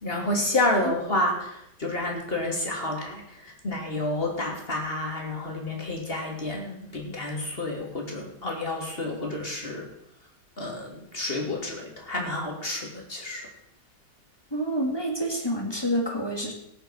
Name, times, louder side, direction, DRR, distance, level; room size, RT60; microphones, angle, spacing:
voice 1, 0.0-9.9 10.6-13.5, left 2 dB, 35° left, 0 dB, 3.0 m, -30 dB
voice 2, 14.5-16.5, equal, 15° left, 1 dB, 2.3 m, -28 dB
18.0 x 6.7 x 6.3 m, 0.75 s
omnidirectional pair, 1.8 m